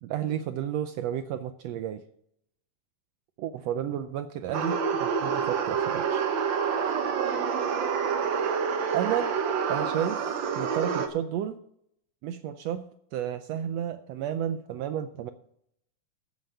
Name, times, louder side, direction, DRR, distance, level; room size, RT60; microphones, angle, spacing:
voice 1, 0.0-2.0 3.4-6.2 8.9-9.4 9.7-11.6 12.2-15.3, right 10 dB, 85° right, 9 dB, 1.4 m, -32 dB
sound 1, 4.5-11.1, right 6 dB, 70° right, 1.1 m, -27 dB
13.5 x 7.5 x 5.5 m, 0.72 s
omnidirectional pair, 3.6 m